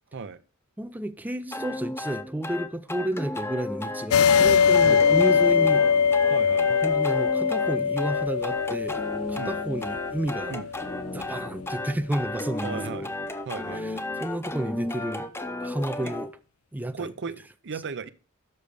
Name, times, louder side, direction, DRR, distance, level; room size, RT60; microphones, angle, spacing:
voice 1, 0.8-5.9 6.8-9.0 9.3-10.6 11.1-12.8 13.7-15.3 15.6-16.3 16.7-17.1, right 1 dB, 10° right, 0.4 m, -31 dB
sound 1, 1.5-16.3, left 2 dB, 10° left, 0.8 m, -34 dB
sound 2, 4.1-11.2, left 6 dB, 70° left, 0.4 m, -22 dB
voice 2, 6.3-6.7 9.4-9.5 10.5-10.7 12.6-13.1 13.4-13.9 16.0-16.1 16.9-18.1, right 4 dB, 55° right, 0.6 m, -35 dB
6.7 x 6.4 x 6.9 m
head